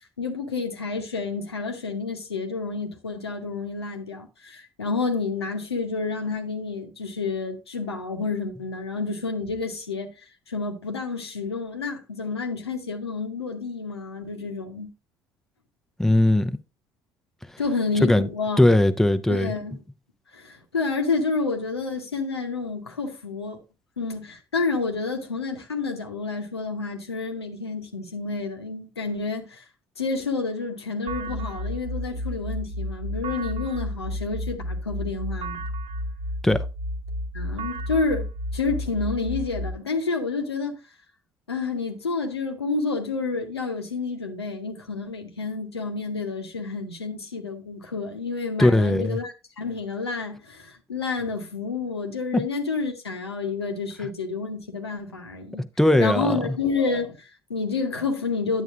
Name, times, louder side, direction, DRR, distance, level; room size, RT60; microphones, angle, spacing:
voice 1, 0.2-10.1 10.5-14.9 17.6-18.7 19.3-19.8 20.3-23.6 24.0-29.6 30.0-35.6 37.3-38.3 38.5-40.8 41.5-55.6 56.0-58.6, left 4 dB, 90° left, 0.9 m, -29 dB
voice 2, 16.0-16.5 18.0-18.3 18.6-19.5 36.4-36.6 48.6-49.2 52.3-52.4 55.8-56.4, left 1 dB, 5° left, 0.6 m, -19 dB
sound 1, 31.1-39.7, equal, 50° right, 1.2 m, -32 dB
9.3 x 8.1 x 2.4 m
figure-of-eight pair, 55°, 13 cm